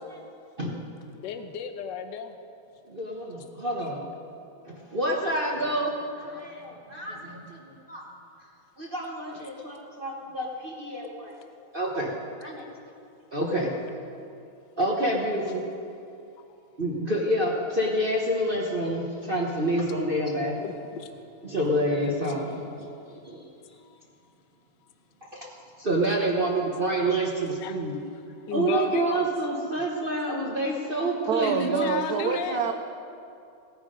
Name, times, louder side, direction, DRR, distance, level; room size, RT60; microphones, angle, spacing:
voice 1, 1.1-2.4 20.0-21.1 22.0-22.1 26.3-26.7 27.4-27.8 28.1-28.2 28.5-29.3 31.4-32.6, left 8 dB, 65° left, 7 dB, 1.3 m, -35 dB
voice 2, 2.9-4.1 4.6-8.0 8.8-11.3 11.7-12.1 12.4-12.9 13.3-13.7 14.8-15.6 16.8-20.6 21.4-22.9 23.2-23.5 25.2-25.5 25.8-28.0 28.5-32.2 32.5-32.7, right 1 dB, 35° right, -3 dB, 1.1 m, -28 dB
voice 3, 31.3-32.7, right 7 dB, 85° right, 7 dB, 0.8 m, -27 dB
17.5 x 9.5 x 5.2 m, 2.6 s
omnidirectional pair, 2.3 m